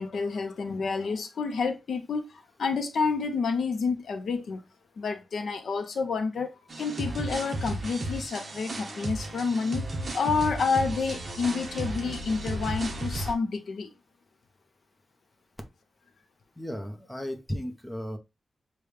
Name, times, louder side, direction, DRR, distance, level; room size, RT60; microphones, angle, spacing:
voice 1, 0.0-4.6 5.0-13.9, left 4 dB, 70° left, 0.6 m, -29 dB
sound 1, 6.7-13.3, right 1 dB, 35° right, 1.0 m, -34 dB
voice 2, 16.6-18.2, equal, 5° left, 0.8 m, -35 dB
6.7 x 2.3 x 3.3 m
wide cardioid pair, 180°, 0 cm